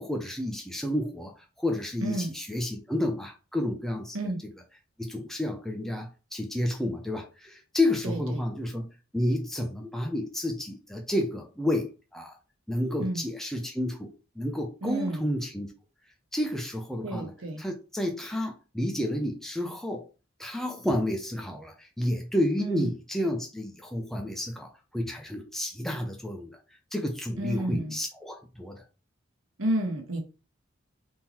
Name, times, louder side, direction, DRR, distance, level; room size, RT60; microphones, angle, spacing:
voice 1, 0.0-4.2 5.0-12.4 12.7-15.7 16.3-17.3 17.6-20.1 20.4-26.6 26.9-28.8, left 1 dB, ahead, 0.5 m, -30 dB
voice 2, 2.0-2.3 4.1-4.4 8.0-8.4 13.0-13.2 14.8-15.3 17.0-17.6 22.6-22.9 27.4-28.0 29.6-30.2, right 1 dB, 85° right, 1.2 m, -31 dB
3.7 x 2.9 x 4.2 m
head